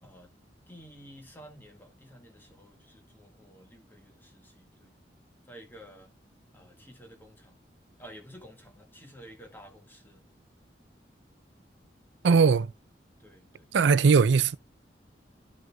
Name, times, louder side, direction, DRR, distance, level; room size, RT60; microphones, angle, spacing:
voice 1, 0.7-5.0 5.5-6.1 6.5-7.6 8.0-10.2 13.2-13.7, equal, 10° left, 1.7 m, -51 dB
voice 2, 12.2-12.7 13.7-14.6, right 5 dB, 80° right, 0.4 m, -20 dB
12.0 x 6.4 x 2.3 m
head